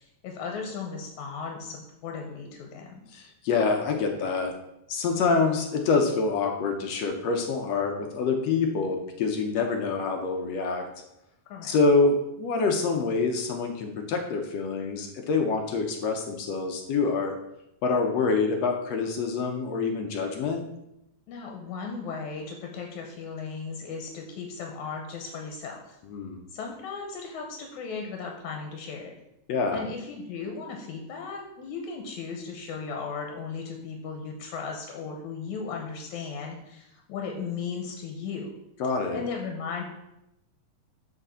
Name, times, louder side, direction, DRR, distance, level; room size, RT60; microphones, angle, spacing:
voice 1, 0.0-3.0 11.5-11.7 21.3-26.0 26.5-29.1 29.7-38.5 39.1-39.8, left 5 dB, 85° left, 2 dB, 2.3 m, -36 dB
voice 2, 3.1-4.5 4.9-10.9 11.6-17.4 17.8-20.6 26.1-26.4 29.5-29.8 38.8-39.2, left 4 dB, 70° left, 3 dB, 1.9 m, -26 dB
6.3 x 5.0 x 6.8 m, 0.85 s
omnidirectional pair, 3.4 m